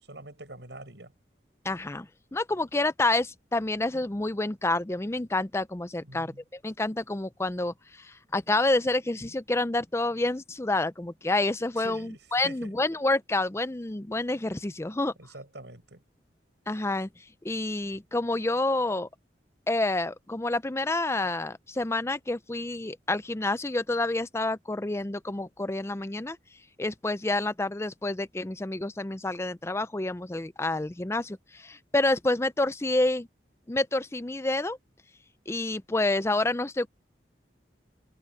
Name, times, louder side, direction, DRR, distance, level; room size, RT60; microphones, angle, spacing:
voice 1, 0.1-1.1 6.0-6.4 11.8-12.7 15.2-16.0, right 2 dB, 80° right, 7.8 m, -45 dB
voice 2, 1.6-15.1 16.7-17.1 17.4-19.1 19.7-26.4 26.8-33.3 33.7-34.8 35.5-36.9, left 2 dB, 15° left, 0.5 m, -28 dB
head